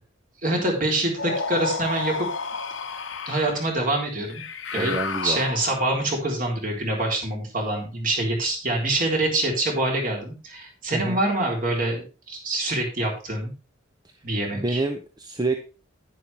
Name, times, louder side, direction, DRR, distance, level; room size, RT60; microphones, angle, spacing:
voice 1, 0.4-2.3 3.3-4.4 4.7-5.0 5.2-13.5 14.2-14.8, right 2 dB, 45° right, 0 dB, 3.6 m, -25 dB
sound 1, 1.2-3.6 4.3-6.0, left 4 dB, 85° left, 1.2 m, -31 dB
voice 2, 4.7-5.4 10.9-11.2 14.5-15.6, right 2 dB, 20° right, 6 dB, 0.7 m, -27 dB
10.0 x 10.0 x 3.4 m, 0.33 s
head